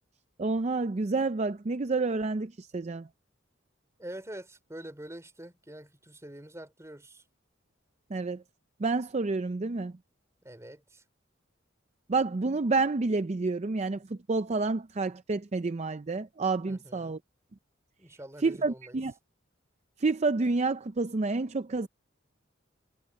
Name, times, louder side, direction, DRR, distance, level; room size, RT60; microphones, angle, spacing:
voice 1, 0.4-3.1 8.1-8.4 8.8-9.9 12.1-17.2 18.4-19.1 20.0-21.9, right 3 dB, 35° right, 0.5 m, -29 dB
voice 2, 4.0-7.2 10.4-11.0 16.7-17.1 18.0-19.0, right 1 dB, 15° right, 3.3 m, -45 dB
head